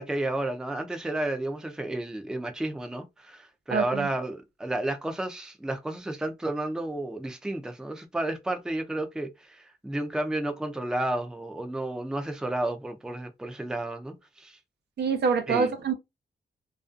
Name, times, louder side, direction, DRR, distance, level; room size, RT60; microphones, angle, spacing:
voice 1, 0.0-14.6 15.5-15.7, right 1 dB, 5° right, 0.5 m, -32 dB
voice 2, 3.7-4.1 15.0-15.9, right 5 dB, 70° right, 0.7 m, -25 dB
2.4 x 2.3 x 2.5 m
cardioid pair, 95°, 18 cm